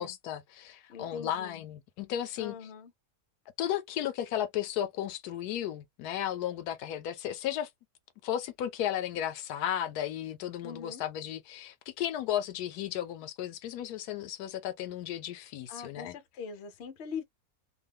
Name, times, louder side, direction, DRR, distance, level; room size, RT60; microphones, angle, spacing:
voice 1, 0.0-2.6 3.6-7.7 8.2-16.1, left 11 dB, 85° left, 1.1 m, -34 dB
voice 2, 0.9-1.6 2.4-2.9 10.6-11.0 15.7-17.2, left 6 dB, 55° left, 0.8 m, -42 dB
2.8 x 2.0 x 3.4 m
omnidirectional pair, 1.6 m